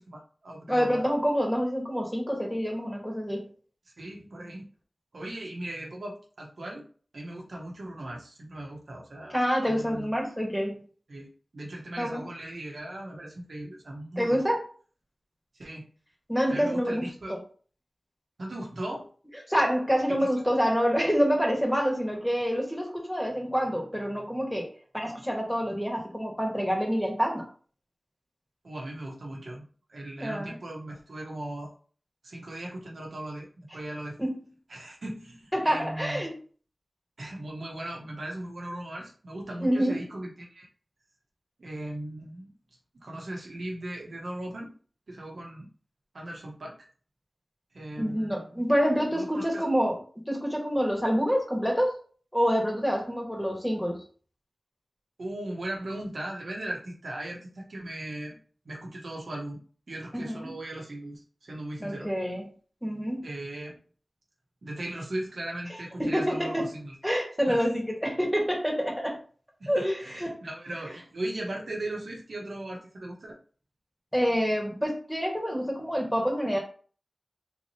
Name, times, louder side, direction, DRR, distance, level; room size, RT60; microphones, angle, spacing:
voice 1, 0.0-1.0 4.0-4.7 5.1-6.8 7.1-9.4 9.7-10.2 11.1-14.4 15.5-15.9 16.5-17.3 18.4-19.1 20.1-20.3 28.6-31.7 32.2-33.5 33.7-34.2 34.7-36.2 37.2-40.7 41.6-42.5 43.0-44.7 45.1-45.7 46.1-46.7 47.7-48.6 49.1-49.6 55.2-58.4 58.6-59.6 59.9-62.1 63.2-63.8 64.6-66.9 67.5-67.7 69.6-73.4, right 1 dB, 85° right, -1 dB, 1.0 m, -38 dB
voice 2, 0.7-3.5 9.3-10.8 12.0-12.2 14.2-14.6 16.3-17.4 19.5-24.7 24.9-27.5 30.2-30.6 34.2-34.4 35.5-36.3 39.6-40.0 48.0-51.9 52.3-54.0 60.1-60.5 61.8-62.5 62.8-63.3 66.0-66.7 67.0-69.2 69.7-70.3 74.1-76.6, equal, 5° left, -1 dB, 1.4 m, -27 dB
3.9 x 3.0 x 2.7 m, 0.41 s
wide cardioid pair, 50°, 0 cm